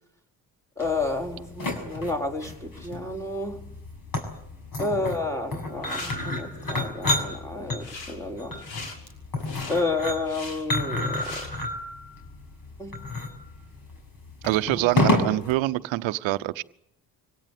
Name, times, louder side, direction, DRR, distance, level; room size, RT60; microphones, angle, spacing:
sound 1, 0.8-15.5, left 2 dB, 45° left, 6.4 m, -30 dB
voice 1, 0.8-3.7 4.8-8.6 9.7-11.3 12.8-13.0 14.7-14.9, left 2 dB, 5° left, 3 dB, 4.5 m, -30 dB
sound 2, 5.7-6.1 7.7-8.2 8.5-11.5, left 3 dB, 70° left, 5.8 m, -40 dB
voice 2, 14.4-16.6, right 17 dB, 75° right, 14 dB, 0.9 m, -25 dB
24.5 x 17.5 x 8.6 m, 0.79 s
hypercardioid pair, 50°, 46 cm